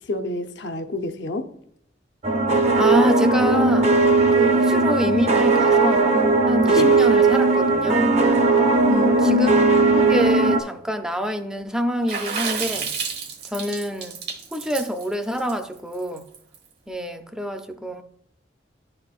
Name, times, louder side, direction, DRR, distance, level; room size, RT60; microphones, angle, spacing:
voice 1, 0.1-1.5 6.7-6.9 8.9-9.5, left 3 dB, 70° left, 0.6 m, -27 dB
sound 1, 2.2-10.6, right 3 dB, 40° right, 0.7 m, -18 dB
voice 2, 2.8-3.9 4.3-6.2 6.5-8.1 9.2-9.5 9.9-12.9 13.5-14.2 14.5-16.3 16.9-18.0, equal, 5° right, 0.5 m, -26 dB
Water / Splash splatter, 12.1-16.6, right 6 dB, 60° right, 1.3 m, -30 dB
10.5 x 4.3 x 2.4 m
head